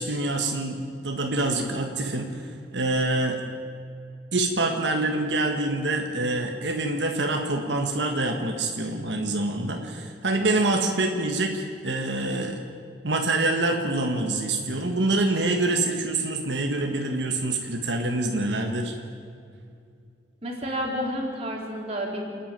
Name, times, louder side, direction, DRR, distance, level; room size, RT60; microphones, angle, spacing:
voice 1, 0.0-3.4 4.3-12.6 13.0-18.9, right 2 dB, 90° right, 2 dB, 1.7 m, -26 dB
voice 2, 20.4-22.2, equal, 35° right, -2 dB, 4.0 m, -30 dB
28.5 x 10.0 x 9.1 m, 2.4 s
head